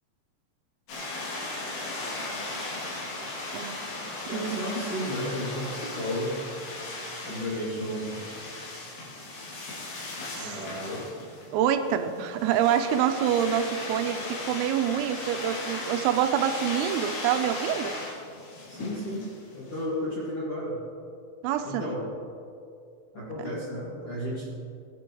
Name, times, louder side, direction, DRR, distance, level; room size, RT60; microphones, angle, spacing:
sound 1, 0.9-19.8, left 2 dB, 75° left, 5.1 m, -37 dB
voice 1, 4.3-6.5 7.2-8.3 10.3-11.1 18.7-20.9 21.6-22.1 23.1-24.5, equal, 40° left, -7 dB, 2.2 m, -33 dB
voice 2, 11.5-18.0 21.4-21.8, right 9 dB, 90° right, 7 dB, 3.4 m, -26 dB
20.5 x 12.0 x 3.1 m, 2.4 s
omnidirectional pair, 5.9 m